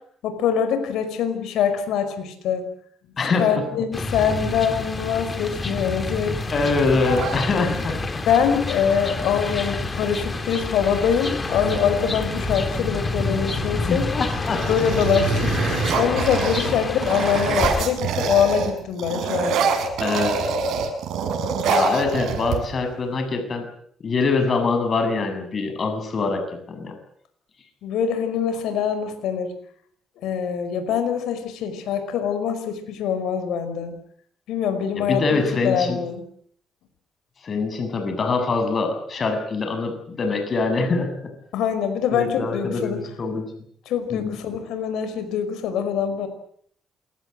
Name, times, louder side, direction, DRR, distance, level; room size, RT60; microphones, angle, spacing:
voice 1, 0.2-2.7 3.4-6.4 6.9-7.2 8.2-14.1 14.7-19.6 27.8-29.5 30.2-33.9 34.5-36.2 41.5-43.0 43.8-46.3, left 7 dB, 85° left, 9 dB, 5.3 m, -24 dB
voice 2, 3.2-3.5 6.5-8.0 13.7-14.6 20.0-20.5 21.7-23.7 24.0-26.9 34.9-36.0 37.4-41.3 42.1-43.4 44.1-44.4, left 4 dB, 45° left, 6 dB, 7.2 m, -24 dB
sound 1, 3.9-17.8, left 3 dB, 30° left, 3.3 m, -28 dB
sound 2, 7.1-8.1 9.8-9.9 10.2-10.7 11.3-12.8 13.4-13.8 14.2-18.7 19.0-22.9, right 5 dB, 80° right, 7.2 m, -26 dB
27.5 x 21.0 x 7.9 m, 0.65 s
cardioid pair, 90°, 0 cm